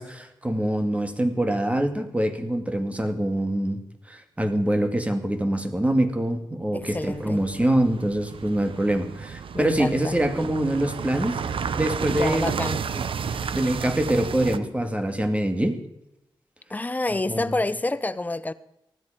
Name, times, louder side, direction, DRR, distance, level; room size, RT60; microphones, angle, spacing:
voice 1, 0.0-3.8 4.1-11.4 11.7-12.5 12.9-13.0 13.5-15.8 17.3-17.5, right 1 dB, 15° right, 2.3 m, -24 dB
voice 2, 6.7-7.4 9.5-10.1 12.1-12.8 16.7-18.5, left 2 dB, 20° left, 0.8 m, -28 dB
sound 1, 6.8-14.6, right 6 dB, 80° right, 0.9 m, -32 dB
19.5 x 14.0 x 5.2 m
wide cardioid pair, 95°, 9 cm